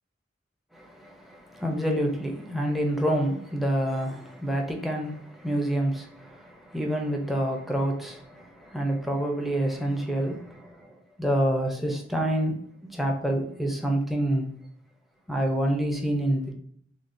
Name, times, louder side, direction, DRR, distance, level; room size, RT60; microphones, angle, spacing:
voice 1, 0.7-12.5 12.9-14.5 15.3-16.5, right 1 dB, ahead, 0.7 m, -27 dB
6.6 x 2.4 x 2.6 m
head